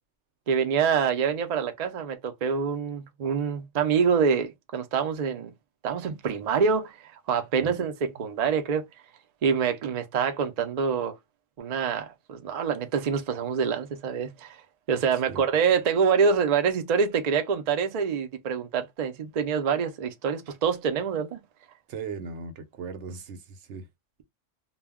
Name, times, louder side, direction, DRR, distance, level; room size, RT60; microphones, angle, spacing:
voice 1, 0.5-5.5 5.8-8.8 9.4-11.1 11.6-14.6 14.9-21.4, right 6 dB, 85° right, 0.3 m, -26 dB
voice 2, 21.9-23.9, right 5 dB, 65° right, 0.9 m, -38 dB
2.2 x 2.0 x 3.4 m
omnidirectional pair, 1.4 m